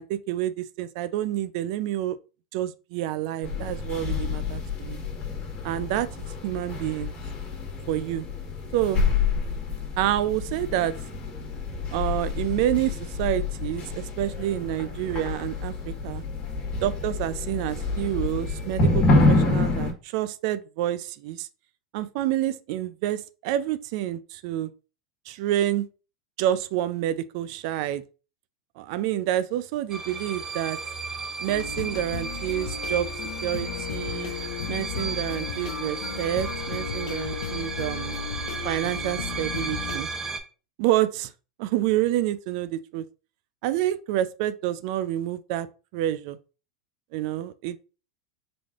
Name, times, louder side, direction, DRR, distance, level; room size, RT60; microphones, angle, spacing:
voice 1, 0.0-2.2 2.5-5.0 5.6-6.1 6.4-7.1 7.9-8.3 8.7-9.0 10.0-10.9 11.9-16.2 16.8-21.5 21.9-24.7 25.3-25.9 26.4-28.0 28.8-30.8 31.4-33.1 33.4-34.3 34.7-38.2 38.6-40.1 40.8-41.3 41.6-43.0 43.6-45.7 45.9-46.4 47.1-47.8, right 13 dB, 60° right, 0.3 m, -28 dB
sound 1, 3.4-19.9, left 3 dB, 35° left, 1.4 m, -27 dB
sound 2, 29.9-40.4, right 4 dB, 15° right, 0.7 m, -34 dB
sound 3, 31.5-40.0, left 8 dB, 75° left, 0.5 m, -35 dB
4.0 x 3.2 x 2.4 m
hypercardioid pair, 105°, 4 cm